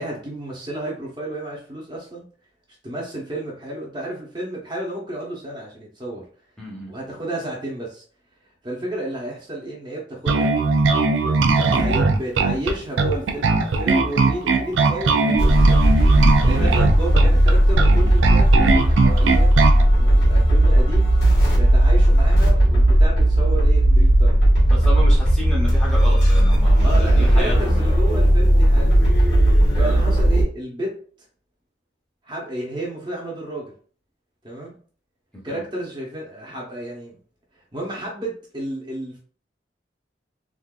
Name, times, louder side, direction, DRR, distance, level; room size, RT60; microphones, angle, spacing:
voice 1, 0.0-2.2 2.8-6.2 6.9-8.0 8.6-10.6 11.2-15.8 16.4-19.6 19.9-21.1 21.5-24.4 26.8-29.3 29.7-30.9 32.2-33.7 34.4-34.7 35.4-37.2 37.7-39.2, right 1 dB, 25° right, -3 dB, 0.8 m, -32 dB
voice 2, 6.6-6.9 16.5-16.7 24.7-27.8 29.8-30.1 35.5-35.6, equal, 5° left, -5 dB, 0.8 m, -31 dB
Bass guitar, 10.3-19.8, right 3 dB, 90° right, 0.4 m, -19 dB
sound 1, 15.4-30.4, right 1 dB, 65° left, 1.6 m, -16 dB
3.6 x 2.6 x 2.4 m, 0.43 s
head